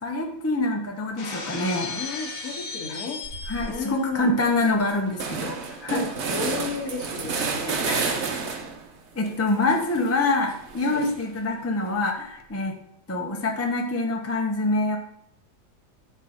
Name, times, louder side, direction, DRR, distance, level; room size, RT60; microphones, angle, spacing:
voice 1, 0.0-2.0 2.9-3.0 3.5-6.1 7.8-8.4 9.1-12.8 13.1-15.0, left 2 dB, 10° left, 1 dB, 0.9 m, -26 dB
Shatter, 1.2-3.9, left 4 dB, 80° left, 2.1 m, -35 dB
voice 2, 2.0-3.2 3.6-4.4 5.9-6.0 6.3-7.9 10.8-11.1, left 3 dB, 60° left, 2 dB, 1.7 m, -33 dB
sound 1, 3.2-3.7 4.1-4.2 4.5-8.9 9.2-11.4, right 5 dB, 50° right, 1.1 m, -31 dB
9.8 x 6.2 x 4.3 m, 0.75 s
omnidirectional pair, 1.7 m